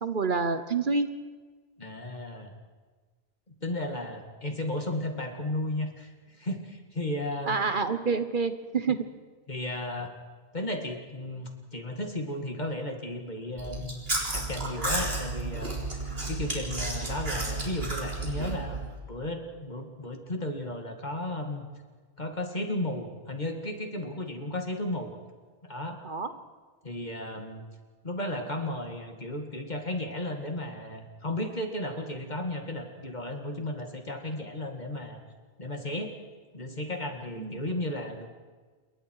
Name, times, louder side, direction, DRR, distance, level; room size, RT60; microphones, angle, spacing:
voice 1, 0.0-1.1 7.5-9.1 26.0-26.3 37.4-37.6, right 4 dB, 55° right, 10 dB, 1.2 m, -28 dB
voice 2, 1.8-2.5 3.5-7.7 9.5-10.1 10.5-14.0 14.3-18.8 19.1-21.7 22.2-25.1 25.6-26.0 26.8-27.6 28.0-35.2 35.6-36.1 36.5-38.3, left 1 dB, 45° left, 4 dB, 2.6 m, -34 dB
Chewing mastication, 13.6-18.9, right 2 dB, 70° right, 4.2 m, -32 dB
28.0 x 22.5 x 4.9 m, 1.4 s
omnidirectional pair, 1.0 m